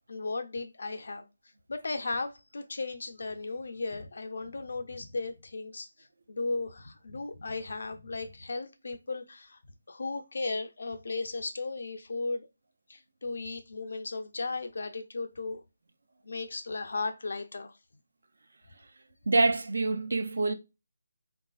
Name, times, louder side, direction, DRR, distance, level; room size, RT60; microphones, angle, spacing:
voice 1, 0.1-1.3 1.7-9.6 9.9-12.5 12.9-15.6 16.2-17.8, left 3 dB, 65° left, 0.6 m, -36 dB
voice 2, 19.3-20.5, right 3 dB, 70° right, 0.4 m, -26 dB
3.1 x 2.4 x 2.3 m
figure-of-eight pair, 165°, 0 cm